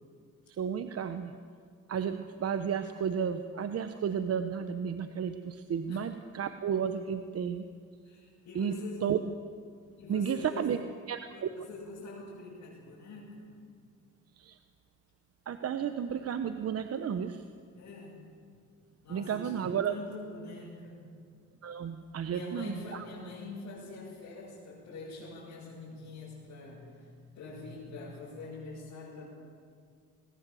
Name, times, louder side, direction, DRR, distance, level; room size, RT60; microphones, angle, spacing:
voice 1, 0.6-1.3 1.9-7.6 8.5-8.8 9.0-9.2 10.1-10.8 11.1-11.5 14.4-14.6 15.5-17.4 19.1-19.9 21.6-23.0, right 8 dB, 50° right, 9 dB, 1.0 m, -32 dB
voice 2, 8.0-9.1 10.0-10.7 11.3-13.5 17.8-18.2 19.0-21.1 22.2-27.1 27.3-29.3, left 3 dB, 70° left, -8 dB, 8.0 m, -44 dB
21.0 x 20.5 x 7.7 m, 2.1 s
cardioid pair, 90°, 30 cm